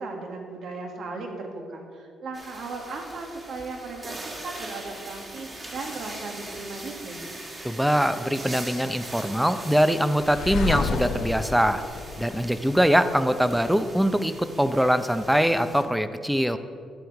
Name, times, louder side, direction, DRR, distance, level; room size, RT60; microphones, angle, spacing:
voice 1, 0.0-7.2, right 3 dB, 70° right, 2 dB, 1.8 m, -37 dB
sound 1, 2.3-15.8, right 1 dB, 30° right, 2.1 m, -41 dB
voice 2, 7.6-11.8 12.2-16.6, equal, 5° right, 11 dB, 0.6 m, -23 dB
sound 2, 10.2-13.2, left 5 dB, 70° left, 0.8 m, -30 dB
11.5 x 8.5 x 4.7 m, 2.3 s
cardioid pair, 90°, 0 cm